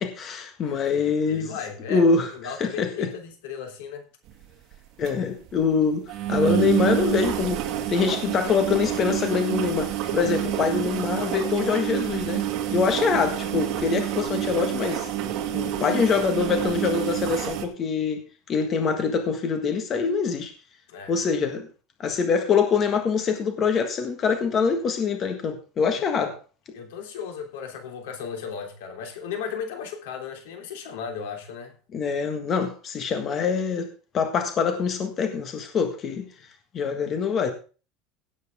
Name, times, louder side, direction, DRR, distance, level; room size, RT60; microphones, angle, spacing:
voice 1, 0.0-1.5 1.9-3.1 5.0-7.6 7.9-12.4 12.7-15.1 15.5-20.5 21.1-21.7 22.0-26.3 31.9-33.9 34.1-36.3 36.7-37.5, left 5 dB, 30° left, 1.6 m, -24 dB
voice 2, 0.6-4.1 10.1-10.3 20.9-21.1 26.2-26.3 26.7-31.7, left 6 dB, 90° left, 3.4 m, -36 dB
sound 1, 4.3-4.4 4.7-4.8 5.0-5.1 5.5-5.6 6.1-17.7, right 11 dB, 45° right, 2.1 m, -28 dB
16.5 x 8.2 x 3.6 m
cardioid pair, 160°, 0 cm